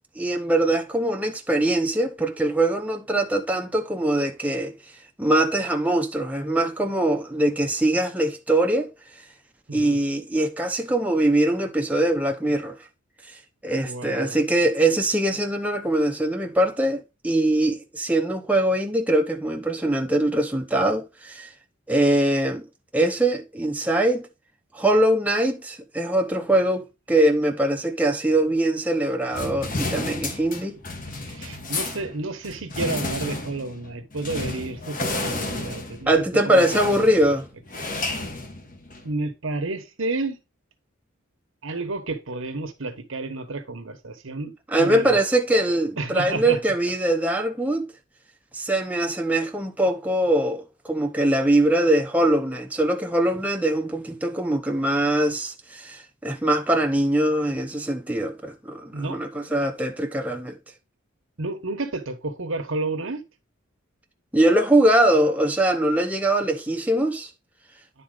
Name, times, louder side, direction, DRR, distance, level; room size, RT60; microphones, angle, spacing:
voice 1, 0.2-4.7 5.2-8.9 9.7-12.8 13.6-21.5 21.9-22.6 22.9-24.3 24.7-30.8 36.1-37.4 44.7-47.9 48.5-60.5 64.3-67.3, right 1 dB, 5° right, 0.7 m, -22 dB
voice 2, 13.8-14.4 31.2-37.0 39.0-40.4 41.6-45.2 46.0-46.6 58.9-59.2 59.5-59.7 61.4-63.2, right 2 dB, 80° right, 1.1 m, -31 dB
sound 1, 29.3-39.1, left 2 dB, 40° left, 1.3 m, -32 dB
10.0 x 4.1 x 3.9 m
head